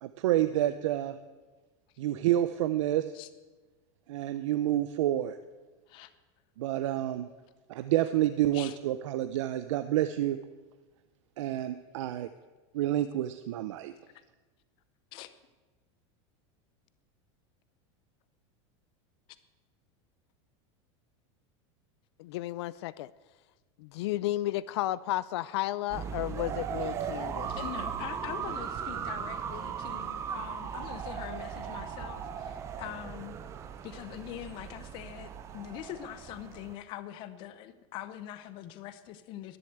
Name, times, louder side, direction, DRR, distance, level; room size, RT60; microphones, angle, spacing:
voice 1, 0.0-1.2 2.0-3.1 4.1-5.4 6.6-7.3 7.7-10.4 11.4-12.3 12.7-13.9, right 13 dB, 85° right, 11 dB, 0.6 m, -28 dB
voice 2, 22.2-23.1 23.8-27.6, left 15 dB, 60° left, 19 dB, 0.4 m, -33 dB
sound 1, 25.9-36.7, right 7 dB, 20° right, 0.6 m, -38 dB
voice 3, 27.5-33.4 33.8-39.6, left 12 dB, 35° left, 13 dB, 0.7 m, -43 dB
11.0 x 11.0 x 8.0 m, 1.3 s
supercardioid pair, 175°, 15 cm